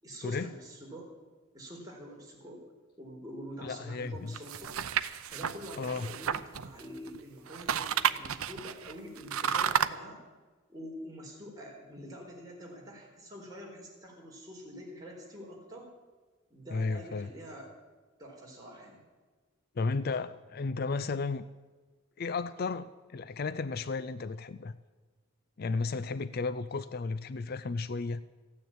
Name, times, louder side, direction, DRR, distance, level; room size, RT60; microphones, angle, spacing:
voice 1, 0.0-1.1 1.5-2.6 3.0-4.8 5.3-10.2 10.7-15.9 16.5-17.7 18.2-19.0, equal, 20° right, -2 dB, 4.0 m, -46 dB
voice 2, 3.6-4.3 5.8-6.1 16.7-17.3 19.8-21.4 22.2-24.8 25.6-28.2, left 4 dB, 45° left, 14 dB, 0.4 m, -33 dB
sound 1, 4.3-7.2 7.5-9.9, right 8 dB, 85° right, 0.6 m, -31 dB
15.0 x 9.5 x 9.0 m, 1.3 s
head